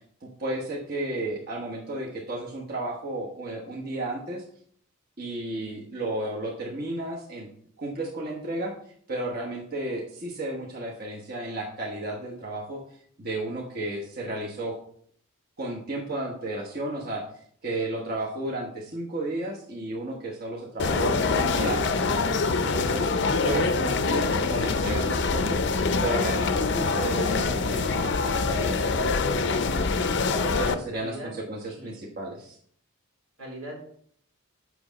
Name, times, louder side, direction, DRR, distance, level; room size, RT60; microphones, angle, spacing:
voice 1, 0.2-4.4 5.2-7.5 7.8-12.8 13.2-14.8 15.6-17.2 17.6-23.1 23.4-25.6 26.0-29.2 30.3-32.6, right 2 dB, 45° right, -2 dB, 1.2 m, -33 dB
sound 1, 20.8-30.7, left 4 dB, 55° left, 0.5 m, -25 dB
voice 2, 30.5-31.3 31.7-32.0 33.4-33.8, right 1 dB, 85° right, -2 dB, 3.4 m, -40 dB
7.8 x 6.2 x 4.0 m, 0.62 s
head